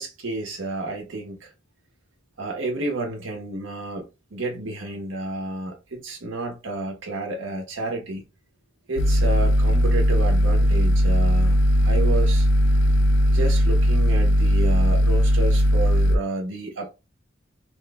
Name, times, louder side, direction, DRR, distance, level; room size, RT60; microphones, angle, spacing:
voice 1, 0.0-1.5 2.4-8.2 8.9-11.6 11.8-12.5 13.3-16.9, right 2 dB, 90° right, 0.8 m, -30 dB
sound 1, 9.0-16.2, equal, 65° left, 0.4 m, -18 dB
2.9 x 2.2 x 3.4 m
head